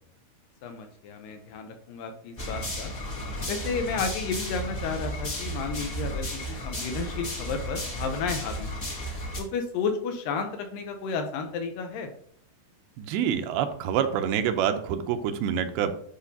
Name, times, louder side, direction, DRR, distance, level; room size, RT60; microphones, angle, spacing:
voice 1, 0.6-2.9 3.5-8.8 9.4-12.1, left 5 dB, 75° left, 6 dB, 2.2 m, -32 dB
sound 1, 2.4-9.4, equal, 35° left, 1.1 m, -33 dB
voice 2, 13.0-15.9, right 8 dB, 85° right, 8 dB, 2.6 m, -26 dB
10.5 x 5.4 x 2.8 m, 0.63 s
omnidirectional pair, 4.4 m